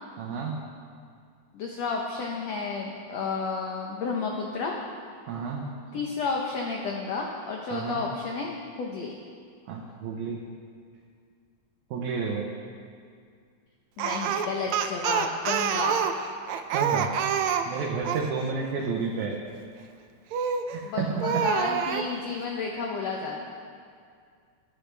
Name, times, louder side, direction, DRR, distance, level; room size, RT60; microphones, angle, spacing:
voice 1, 0.2-0.6 5.3-5.6 7.7-8.0 9.7-10.4 11.9-12.5 16.7-17.1 17.7-19.4 20.7-21.5, right 5 dB, 70° right, -1 dB, 2.2 m, -31 dB
voice 2, 1.5-4.8 5.9-9.2 14.0-16.1 20.8-23.4, left 4 dB, 70° left, 0 dB, 1.7 m, -31 dB
Speech, 14.0-18.3 20.3-20.7 21.2-22.1, right 7 dB, 90° right, 1.5 m, -27 dB
21.0 x 10.5 x 3.4 m, 2.2 s
omnidirectional pair, 4.0 m